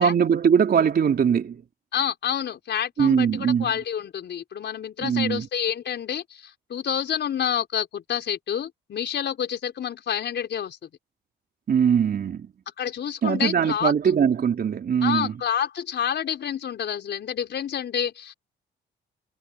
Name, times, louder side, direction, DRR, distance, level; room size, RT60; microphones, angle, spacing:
voice 1, 0.0-1.6 3.0-3.7 5.0-5.5 11.7-12.5 13.2-15.3, right 7 dB, 50° right, 3.8 m, -21 dB
voice 2, 1.9-10.8 12.8-13.9 15.0-18.3, left 8 dB, 60° left, 4.6 m, -28 dB
cardioid pair, 90°, 20 cm